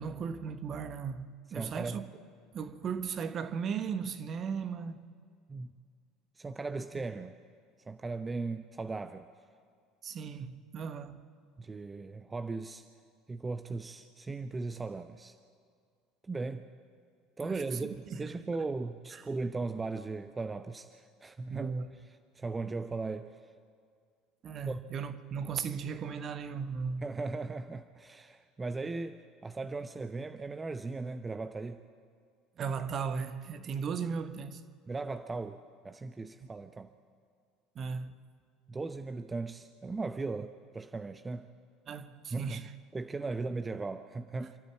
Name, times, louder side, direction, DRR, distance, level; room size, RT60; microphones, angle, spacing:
voice 1, 0.0-2.1 2.5-5.0 6.9-7.0 10.0-11.2 17.4-18.6 19.1-19.2 21.5-21.9 24.4-27.1 32.6-34.6 36.4-36.5 37.7-38.2 41.9-42.7, right 6 dB, 40° right, 1.2 m, -37 dB
voice 2, 1.5-2.0 5.5-5.7 6.4-7.3 7.9-9.3 11.6-12.8 13.3-15.3 16.2-16.7 17.4-21.7 22.3-23.4 24.7-24.8 27.0-31.8 34.9-36.9 38.7-41.5 42.3-42.6 42.9-44.6, right 3 dB, 20° right, 0.8 m, -37 dB
28.5 x 12.5 x 7.4 m
figure-of-eight pair, 65°, 0 cm